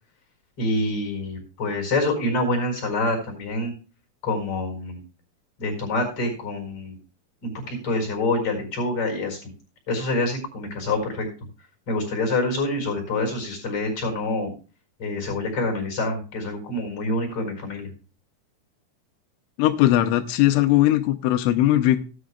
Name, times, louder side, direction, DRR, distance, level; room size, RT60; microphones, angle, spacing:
voice 1, 0.6-3.7 4.2-5.0 5.6-7.0 7.4-9.4 9.9-11.3 11.9-14.5 15.0-17.9, left 2 dB, 30° left, 3 dB, 5.4 m, -26 dB
voice 2, 19.6-22.0, left 14 dB, 90° left, 6 dB, 3.1 m, -19 dB
18.0 x 9.9 x 2.3 m, 0.34 s
omnidirectional pair, 5.4 m